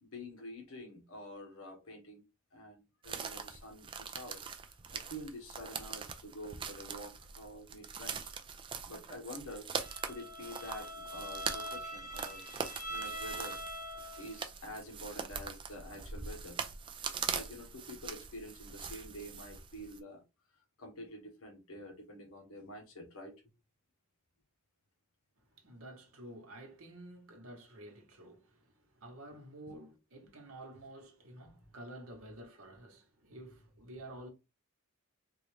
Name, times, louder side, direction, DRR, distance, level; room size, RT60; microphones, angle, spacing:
voice 1, 0.0-2.2 2.5-4.4 4.7-8.3 8.9-9.7 10.0-13.6 14.2-16.6 17.3-20.2 20.8-23.3, left 1 dB, 75° left, 1.1 m, -48 dB
sound 1, 3.0-20.0, right 6 dB, 25° right, 0.3 m, -42 dB
Bowed string instrument, 9.8-14.4, right 1 dB, 45° left, 1.3 m, -43 dB
voice 2, 25.5-34.3, right 1 dB, 65° right, 1.0 m, -51 dB
3.8 x 2.4 x 3.1 m
head